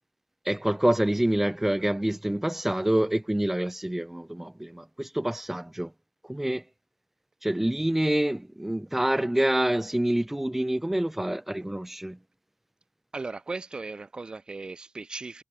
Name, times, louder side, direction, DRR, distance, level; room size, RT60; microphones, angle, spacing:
voice 1, 0.5-5.9 6.2-6.6 7.4-12.2, right 1 dB, 10° right, 3.3 m, -27 dB
voice 2, 13.1-15.4, right 3 dB, 45° right, 7.7 m, -37 dB
wide cardioid pair, 75°, 2 cm